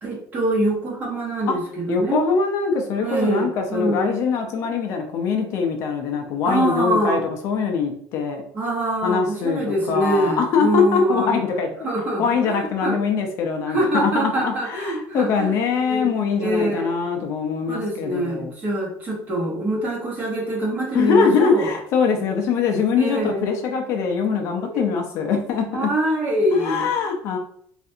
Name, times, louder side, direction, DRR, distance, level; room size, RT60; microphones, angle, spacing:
voice 1, 0.0-2.2 3.0-4.1 6.5-7.2 8.5-11.4 11.8-13.0 13.7-15.5 15.8-16.1 16.4-16.9 17.7-21.7 23.0-23.5 24.7-24.9 25.7-26.8, right 1 dB, 30° right, -2 dB, 1.0 m, -24 dB
voice 2, 1.9-8.4 9.0-11.7 12.2-18.5 20.9-25.9 26.5-27.4, left 5 dB, 50° left, 3 dB, 0.5 m, -22 dB
3.3 x 2.5 x 2.7 m, 0.63 s
cardioid pair, 165°, 6 cm